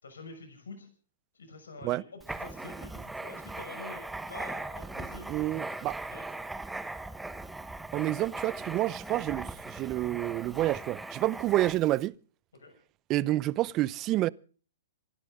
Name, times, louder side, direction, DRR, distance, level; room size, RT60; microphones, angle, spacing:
voice 1, 0.0-0.9 1.3-5.3 6.1-6.2 12.5-12.7, left 3 dB, 80° left, 6.0 m, -47 dB
Writing, 2.2-12.0, right 2 dB, 5° right, 1.2 m, -39 dB
voice 2, 5.3-6.0 7.9-12.1 13.1-14.3, right 16 dB, 30° right, 0.7 m, -29 dB
27.0 x 12.5 x 3.7 m
hypercardioid pair, 125°, 0 cm